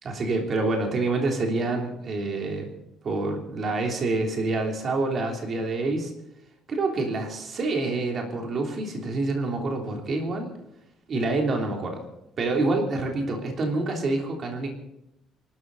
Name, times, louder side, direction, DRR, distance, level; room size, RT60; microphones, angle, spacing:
voice 1, 0.0-2.7 3.0-6.1 6.7-10.5 11.1-12.0 12.4-14.7, right 2 dB, 35° right, 2 dB, 3.3 m, -27 dB
26.5 x 12.5 x 4.1 m, 0.85 s
cardioid pair, 170°, 0 cm